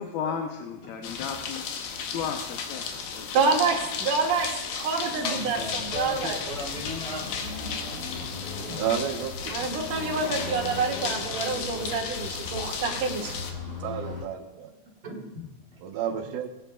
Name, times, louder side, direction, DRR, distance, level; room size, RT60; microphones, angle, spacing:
voice 1, 0.0-1.6 2.1-3.3, left 7 dB, 90° left, 3 dB, 2.7 m, -34 dB
sound 1, 1.0-13.5, left 6 dB, 75° left, 2.4 m, -35 dB
voice 2, 2.8-3.3 5.2-7.3 7.6-7.7 8.6-8.8 15.0-15.8, left 1 dB, 35° right, -3 dB, 1.6 m, -38 dB
voice 3, 3.3-6.4 9.5-13.4, right 4 dB, 65° right, 0 dB, 2.7 m, -27 dB
Accelerating revving vroom, 5.6-14.3, left 3 dB, 45° left, 2.4 m, -38 dB
voice 4, 8.8-9.8 13.8-14.7 15.8-16.5, right 9 dB, 80° right, 5 dB, 2.7 m, -31 dB
21.0 x 9.1 x 2.3 m, 1.1 s
omnidirectional pair, 4.3 m